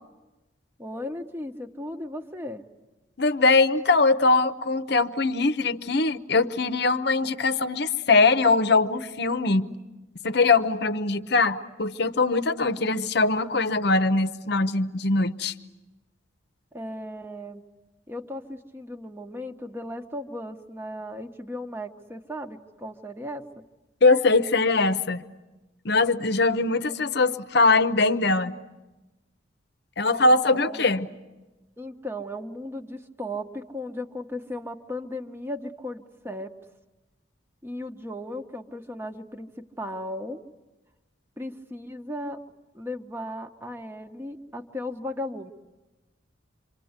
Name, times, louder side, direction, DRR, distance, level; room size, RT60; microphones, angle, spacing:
voice 1, 0.8-2.6 16.7-17.6 18.1-23.5 30.5-30.8 31.8-36.5 37.6-40.4 41.4-42.4 42.7-45.5, left 1 dB, 10° right, 6 dB, 1.2 m, -36 dB
voice 2, 3.2-9.7 10.2-15.5 24.0-25.2 25.8-28.5 30.0-31.1, left 3 dB, 55° left, 11 dB, 0.9 m, -22 dB
27.5 x 25.5 x 8.1 m, 1.1 s
head